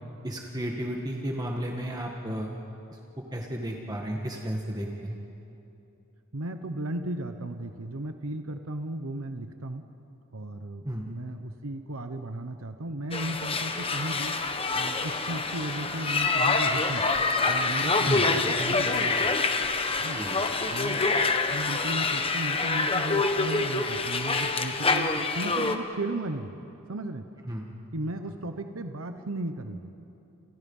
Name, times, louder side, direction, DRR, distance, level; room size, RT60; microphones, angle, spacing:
voice 1, 0.2-2.5 3.3-5.2 10.9-11.1 18.1-18.3 20.1-20.3 27.5-27.6, equal, 20° right, 0 dB, 1.8 m, -33 dB
voice 2, 6.3-9.9 10.3-14.4 14.7-17.1 17.5-19.3 20.0-20.2 20.7-21.2 21.5-26.5 26.9-27.2 27.9-29.9, right 1 dB, 80° right, 7 dB, 1.1 m, -35 dB
sound 1, 13.1-25.8, left 3 dB, 25° left, 1.3 m, -26 dB
sound 2, 14.3-21.2, left 2 dB, 70° left, 5.5 m, -48 dB
29.5 x 28.5 x 5.6 m, 2.9 s
head